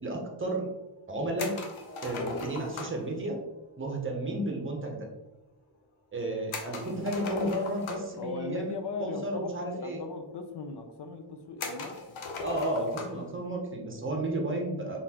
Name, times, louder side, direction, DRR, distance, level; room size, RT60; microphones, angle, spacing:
voice 1, 0.0-0.7 1.1-1.6 2.0-3.4 3.8-5.1 6.1-8.7 9.0-10.0 12.4-15.0, right 1 dB, 25° right, 1 dB, 0.7 m, -32 dB
sound 1, 1.4-3.1 6.5-8.2 9.3-9.4 9.7-9.8 10.5-10.6 11.6-13.2, left 3 dB, 85° left, 0.8 m, -38 dB
sound 2, 1.8-5.8, right 3 dB, 35° left, 0.8 m, -54 dB
voice 2, 8.2-12.2, left 4 dB, 60° left, 6 dB, 0.6 m, -38 dB
4.2 x 3.7 x 2.8 m, 0.96 s
wide cardioid pair, 175°, 46 cm